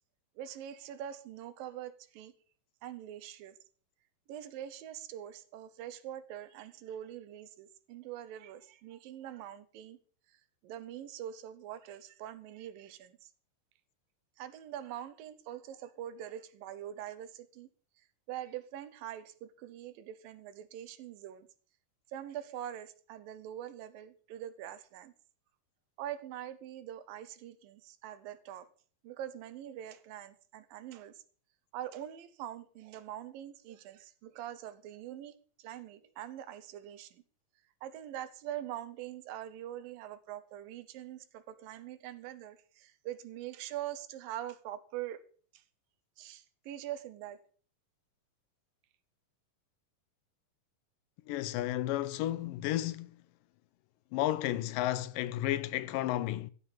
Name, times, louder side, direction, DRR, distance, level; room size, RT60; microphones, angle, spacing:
voice 1, 0.4-2.3 2.8-3.6 4.3-10.0 10.6-13.2 14.4-17.7 18.3-21.5 22.1-25.1 26.0-28.7 29.0-31.1 31.7-37.2 37.8-45.2 45.5-45.6 46.2-47.4, right 11 dB, 85° right, 2.7 m, -43 dB
voice 2, 51.3-53.2 54.1-56.5, left 14 dB, 80° left, 2.4 m, -32 dB
15.0 x 6.3 x 7.2 m
omnidirectional pair, 4.0 m